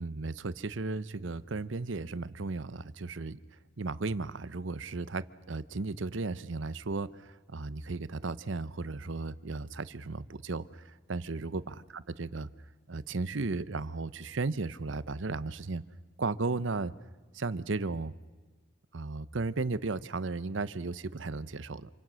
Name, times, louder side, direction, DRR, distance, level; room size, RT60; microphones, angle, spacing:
voice 1, 0.0-3.4 3.8-12.5 12.9-15.8 16.2-16.9 17.3-18.1 18.9-21.9, right 3 dB, 70° right, 16 dB, 0.8 m, -35 dB
27.5 x 25.0 x 6.3 m, 1.3 s
head